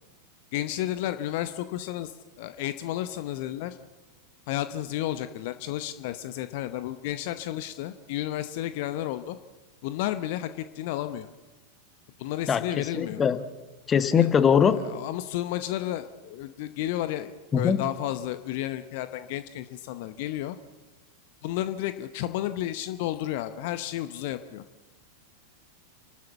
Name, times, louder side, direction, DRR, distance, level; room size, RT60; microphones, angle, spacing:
voice 1, 0.5-3.8 4.5-9.4 9.8-11.3 12.2-13.2 14.1-14.3 14.7-20.6 21.4-24.6, left 13 dB, 50° left, 11 dB, 0.8 m, -32 dB
voice 2, 12.9-13.4 13.9-14.7 17.5-17.8, left 7 dB, 20° left, 11 dB, 1.3 m, -21 dB
30.0 x 12.5 x 7.1 m, 1.2 s
figure-of-eight pair, 90°, 0 cm